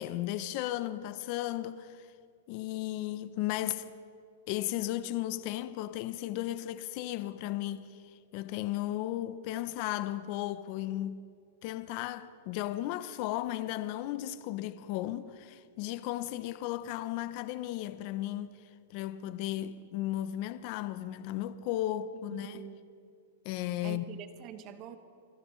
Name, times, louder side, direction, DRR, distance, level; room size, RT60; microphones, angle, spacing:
voice 1, 0.0-2.1 2.5-3.9 4.5-11.3 11.6-18.6 18.9-22.6 23.4-24.0, left 14 dB, 40° left, 0.5 m, -35 dB
voice 2, 22.3-22.9 23.8-25.0, right 10 dB, 35° right, 1.0 m, -45 dB
29.0 x 11.5 x 3.1 m
supercardioid pair, 150°, 0 cm